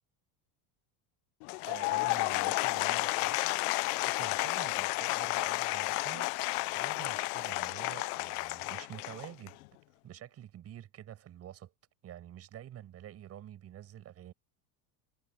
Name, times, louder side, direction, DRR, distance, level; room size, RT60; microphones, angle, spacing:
Applause / Crowd, 1.4-9.6, left 24 dB, 70° left, 0.7 m, -32 dB
voice 1, 1.6-9.6 10.0-11.7 12.0-14.3, right 11 dB, 30° right, 7.4 m, -48 dB
cardioid pair, 165°, 46 cm